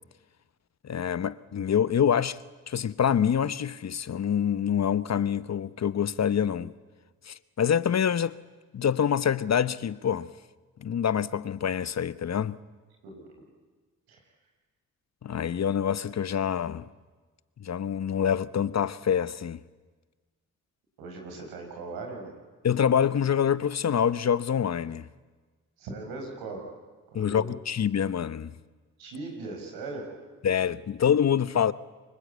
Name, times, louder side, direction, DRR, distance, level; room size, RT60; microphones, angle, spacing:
voice 1, 0.8-2.4 2.7-6.7 7.3-8.3 8.7-10.3 10.8-12.6 15.2-16.9 17.6-19.6 22.6-25.1 27.1-28.5 30.4-31.7, left 8 dB, 45° left, 1.0 m, -26 dB
voice 2, 21.0-22.3 25.8-26.6 27.1-27.5 29.0-30.1, right 3 dB, 85° right, 6.1 m, -39 dB
27.5 x 23.5 x 8.3 m
supercardioid pair, 50°, 36 cm